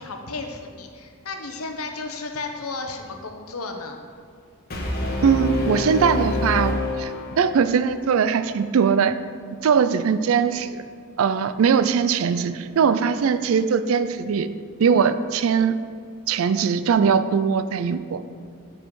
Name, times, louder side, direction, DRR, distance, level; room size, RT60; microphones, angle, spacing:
voice 1, 0.0-4.0, left 3 dB, 80° left, 4 dB, 0.9 m, -33 dB
Brass instrument, 4.7-7.8, left 2 dB, 45° left, 1.1 m, -26 dB
voice 2, 5.2-9.2 9.6-10.8 11.2-14.5 14.8-15.8 16.3-18.2, right 6 dB, 70° right, 12 dB, 0.4 m, -21 dB
7.5 x 5.5 x 4.7 m, 2.2 s
head